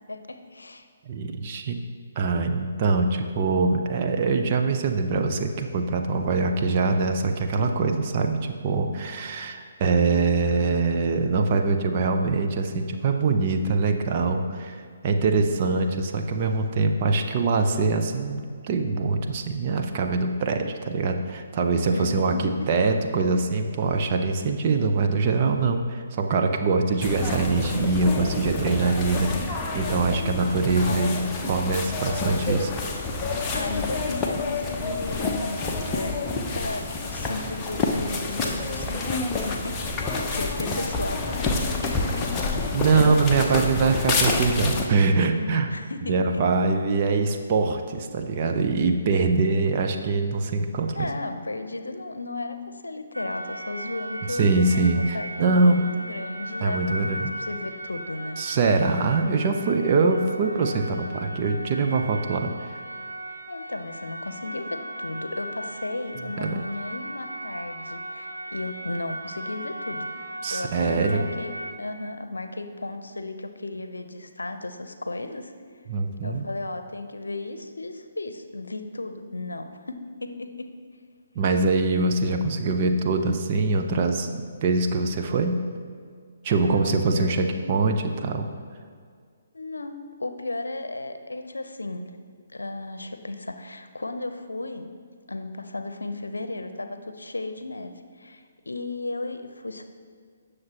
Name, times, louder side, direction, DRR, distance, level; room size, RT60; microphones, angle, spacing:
voice 1, 0.1-0.9 15.1-15.4 21.9-22.6 30.7-31.3 32.2-32.4 33.5-42.3 45.4-46.4 49.1-49.5 50.9-58.4 63.5-70.1 70.5-71.5 71.8-75.5 76.2-80.7 86.5-87.7 89.5-92.1 92.5-94.9 95.3-99.9, left 2 dB, 70° left, 8 dB, 0.7 m, -35 dB
voice 2, 1.1-1.8 2.2-32.7 42.7-45.7 46.1-51.1 54.3-55.8 56.6-57.3 58.4-62.7 66.4-66.6 70.4-71.2 75.9-76.5 81.3-85.6 86.4-88.5, right 3 dB, 35° right, 4 dB, 0.8 m, -23 dB
sound 1, 27.0-44.9, left 3 dB, 15° left, 0.8 m, -28 dB
sound 2, 53.1-71.7, right 1 dB, 90° right, 1.1 m, -37 dB
17.0 x 6.6 x 3.0 m, 2.1 s
figure-of-eight pair, 135°, 0 cm